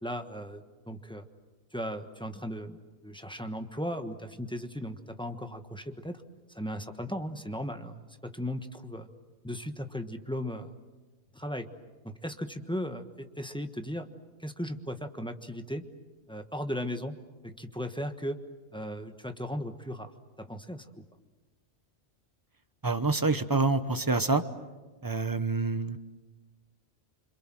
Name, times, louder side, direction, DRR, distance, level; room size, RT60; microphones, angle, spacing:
voice 1, 0.0-1.2 1.7-6.2 6.5-9.1 9.4-10.7 11.3-11.7 12.0-14.1 14.4-15.8 16.3-17.2 17.4-18.4 18.7-20.1 20.4-20.8, equal, 5° left, 6 dB, 1.3 m, -37 dB
voice 2, 22.8-24.4 25.0-26.0, right 3 dB, 20° right, 10 dB, 0.9 m, -27 dB
27.5 x 25.5 x 7.7 m, 1.2 s
omnidirectional pair, 1.1 m